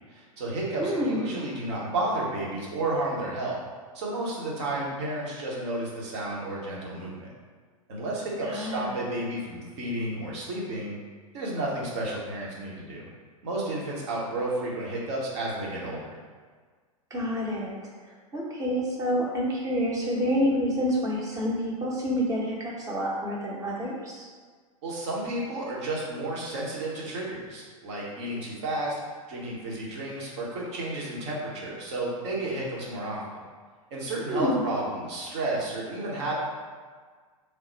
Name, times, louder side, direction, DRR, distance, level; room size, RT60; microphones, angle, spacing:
voice 1, 0.1-3.6 3.9-7.3 7.9-10.9 11.3-13.0 13.4-16.0 24.8-29.0 29.3-33.2 33.9-36.3, right 2 dB, 50° right, -4 dB, 1.1 m, -32 dB
voice 2, 0.8-1.2 8.4-8.9 17.1-17.7 18.3-24.3 34.3-34.6, equal, 20° right, -4 dB, 0.9 m, -28 dB
3.3 x 2.3 x 3.9 m, 1.5 s
figure-of-eight pair, 100°, 18 cm